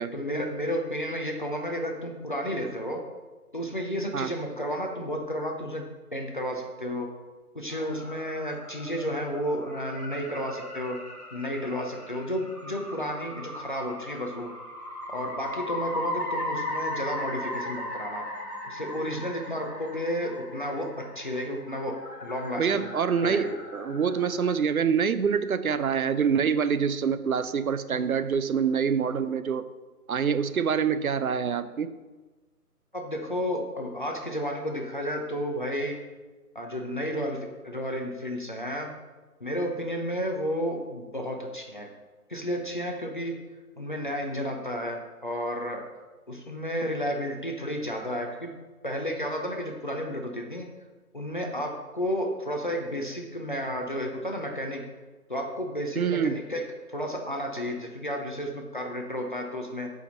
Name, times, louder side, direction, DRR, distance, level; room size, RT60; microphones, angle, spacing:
voice 1, 0.1-3.0 3.5-5.9 6.1-7.1 7.5-11.0 11.3-14.5 15.1-18.2 18.6-20.9 21.2-21.9 22.2-22.9 23.2-23.5 32.9-36.0 36.5-37.4 37.6-38.9 39.4-41.9 42.3-43.3 43.8-45.8 46.3-48.5 48.8-50.7 51.1-54.8 55.3-56.6 56.9-59.9, equal, 35° left, 2 dB, 0.6 m, -32 dB
sound 1, 7.7-24.6, left 1 dB, 75° left, 1.9 m, -38 dB
voice 2, 22.6-29.6 30.1-31.9 56.0-56.4, right 6 dB, 65° right, 12 dB, 0.6 m, -26 dB
8.1 x 5.1 x 4.0 m, 1.2 s
figure-of-eight pair, 150°, 47 cm